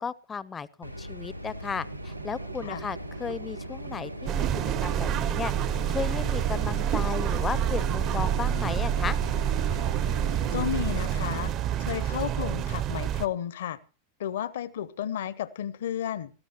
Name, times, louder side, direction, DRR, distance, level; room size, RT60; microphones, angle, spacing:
voice 1, 0.0-4.5 4.8-5.5 5.9-9.2, left 6 dB, 20° left, 0.6 m, -34 dB
sound 1, 0.8-11.4, equal, 90° right, 0.7 m, -39 dB
sound 2, 1.8-11.9, right 8 dB, 65° right, 1.4 m, -46 dB
sound 3, 4.3-13.3, right 10 dB, 35° right, 0.6 m, -28 dB
voice 2, 10.5-11.5 11.8-13.8 14.2-16.3, left 10 dB, 60° left, 0.8 m, -32 dB
20.5 x 14.0 x 3.0 m
figure-of-eight pair, 90°, 0 cm